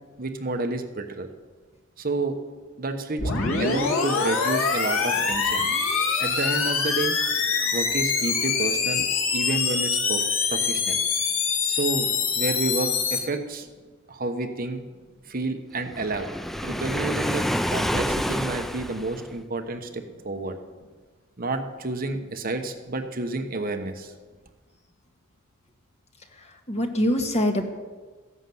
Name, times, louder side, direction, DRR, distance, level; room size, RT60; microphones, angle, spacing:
voice 1, 0.2-1.3 2.0-2.3 2.8-3.2 3.6-5.7 6.2-7.2 7.7-9.0 9.3-11.0 11.7-12.1 12.4-13.7 14.1-14.8 15.3-16.3 16.6-20.5 21.4-24.1, right 2 dB, 45° right, 6 dB, 1.1 m, -30 dB
sound 1, 3.2-13.2, left 5 dB, 70° left, 2.3 m, -24 dB
Waves surf, 15.9-19.4, equal, ahead, 0.3 m, -28 dB
voice 2, 26.3-27.6, equal, 30° left, 4 dB, 1.6 m, -25 dB
14.5 x 11.0 x 7.8 m, 1.4 s
head